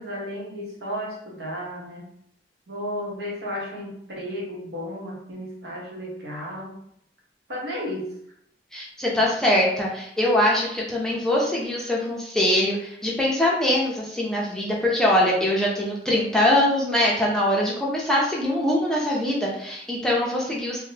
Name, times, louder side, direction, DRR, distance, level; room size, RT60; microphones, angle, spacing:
voice 1, 0.0-2.0 2.7-6.8 7.5-8.1, equal, 75° right, -3 dB, 0.9 m, -33 dB
voice 2, 8.7-20.8, left 1 dB, 5° left, -4 dB, 0.5 m, -23 dB
3.5 x 2.1 x 2.7 m, 0.71 s
head